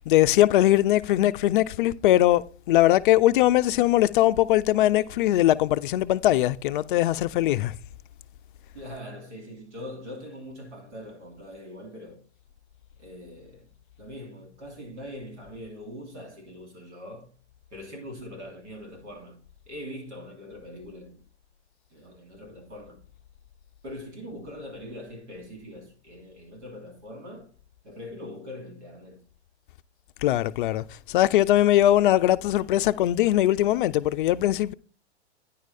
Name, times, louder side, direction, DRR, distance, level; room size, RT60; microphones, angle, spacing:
voice 1, 0.1-7.8 30.2-34.7, left 14 dB, 50° left, 0.4 m, -21 dB
voice 2, 8.7-12.2 13.0-13.7 14.0-17.3 17.7-19.4 19.7-21.2 21.9-23.0 23.8-27.5 27.8-29.2, left 1 dB, 80° right, 3.0 m, -42 dB
9.7 x 4.6 x 4.1 m
hypercardioid pair, 120°, 35 cm